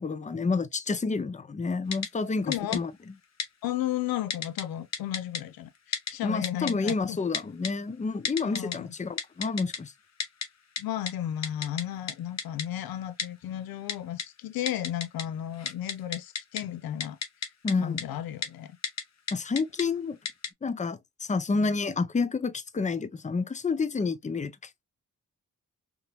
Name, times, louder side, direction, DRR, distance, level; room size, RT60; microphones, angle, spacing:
voice 1, 0.0-2.9 6.2-9.9 17.6-18.0 19.3-20.2 20.6-24.5, left 4 dB, 20° left, 0.5 m, -29 dB
Typing, 1.9-2.1 2.5-2.8 3.4-3.5 4.3-4.6 4.9-5.4 5.9-6.1 6.4-6.9 7.3-7.7 8.2-8.8 9.2-9.8 10.2-10.5 10.8-10.9 11.1-11.2 11.4-11.8 12.1-12.2 12.4-12.6 13.2-13.3 13.9-14.2 14.7-15.2 15.5-16.6 17.0-17.7 18.0-18.1 18.4-18.5 18.8-19.0 19.3-19.8 20.2-20.5, left 6 dB, 50° left, 0.8 m, -31 dB
voice 2, 2.4-2.8 3.6-7.2 8.4-8.9 10.8-17.2 17.8-18.7, left 12 dB, 80° left, 0.5 m, -34 dB
3.7 x 2.9 x 2.3 m
supercardioid pair, 45°, 35 cm